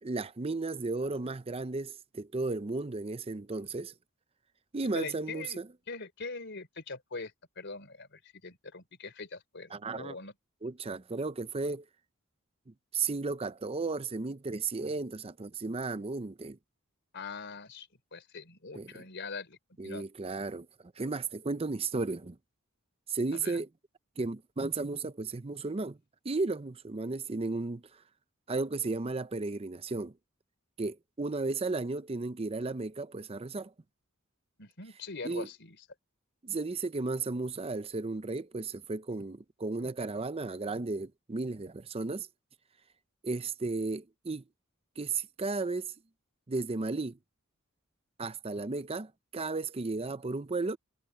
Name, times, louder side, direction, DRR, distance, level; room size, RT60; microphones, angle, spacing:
voice 1, 0.0-3.9 4.7-5.7 9.7-10.2 10.6-11.8 12.7-16.6 18.8-19.0 19.8-22.4 23.1-23.7 24.2-26.0 26.2-28.0 28.5-30.1 30.8-33.7 35.2-35.5 36.4-42.3 43.2-44.4 45.0-45.9 46.5-47.2 48.2-50.8, right 3 dB, 30° right, 0.6 m, -34 dB
voice 2, 4.9-5.6 5.9-10.3 17.1-19.6 19.8-20.0 23.4-23.6 34.6-35.8, left 4 dB, 60° left, 3.9 m, -42 dB
head